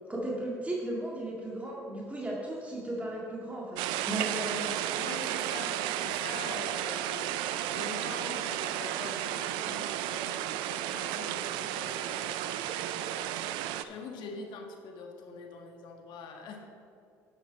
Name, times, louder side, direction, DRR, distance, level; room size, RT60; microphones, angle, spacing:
voice 1, 0.1-4.7, right 1 dB, 15° right, -4 dB, 2.1 m, -35 dB
sound 1, 3.8-13.8, right 12 dB, 75° right, 0.4 m, -33 dB
voice 2, 5.0-7.3 7.7-13.4 13.8-16.7, left 4 dB, 65° left, 3 dB, 1.5 m, -44 dB
10.5 x 8.0 x 4.2 m, 2.5 s
hypercardioid pair, 65°, 8 cm